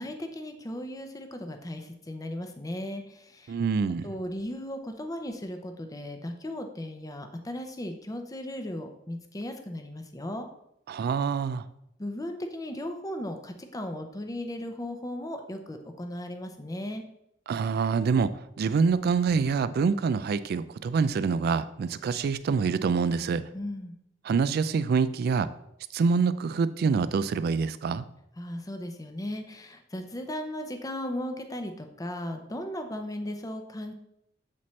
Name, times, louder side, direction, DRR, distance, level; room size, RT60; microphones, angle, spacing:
voice 1, 0.0-3.5 4.0-10.5 12.0-17.0 23.5-24.0 28.4-33.9, left 1 dB, 20° left, 6 dB, 0.6 m, -36 dB
voice 2, 3.5-4.1 10.9-11.6 17.5-23.4 24.3-25.5 25.9-28.0, right 5 dB, 55° right, 14 dB, 0.3 m, -26 dB
7.2 x 4.2 x 3.1 m, 0.78 s
head